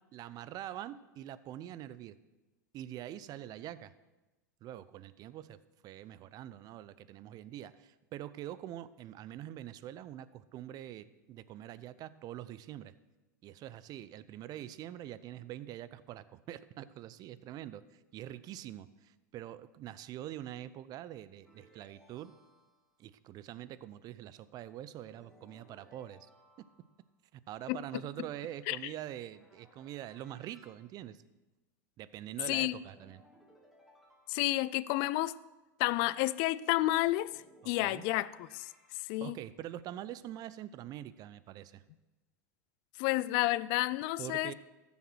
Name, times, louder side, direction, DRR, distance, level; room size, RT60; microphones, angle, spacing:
voice 1, 0.1-2.2 2.7-3.9 4.6-5.6 5.8-12.9 13.4-22.3 23.0-26.3 27.3-31.2 32.0-33.2 37.6-38.0 39.2-41.8 44.2-44.5, right 12 dB, 40° right, 0.6 m, -45 dB
sound 1, 21.4-23.0 25.0-27.1 29.3-30.8 32.8-34.9 37.2-39.4, equal, 5° right, 3.2 m, -63 dB
voice 2, 34.3-35.4 35.8-38.7 39.0-39.4 43.0-44.5, left 18 dB, 50° left, 0.4 m, -30 dB
14.0 x 7.2 x 6.3 m
hypercardioid pair, 90°, 10 cm